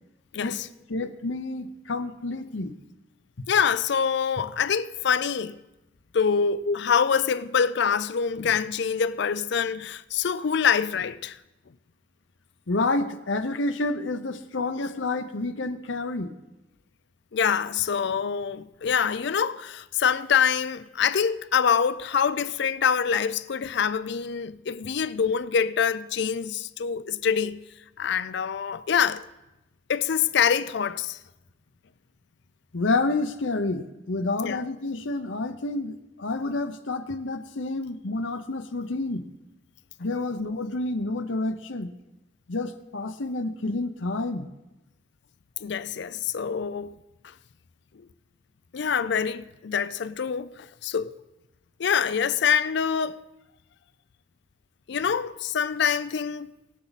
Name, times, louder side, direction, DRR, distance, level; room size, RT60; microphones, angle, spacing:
voice 1, 0.3-0.7 3.5-5.6 6.1-11.4 17.3-27.6 28.0-29.2 29.9-31.2 34.4-34.6 45.6-46.9 48.7-51.1 51.8-53.2 54.9-56.5, left 7 dB, 65° left, 0.5 m, -25 dB
voice 2, 0.9-2.7 6.7-6.8 12.7-16.3 32.7-39.2 40.0-41.9 42.5-44.5, left 2 dB, 85° left, 0.9 m, -29 dB
21.0 x 7.2 x 4.1 m
head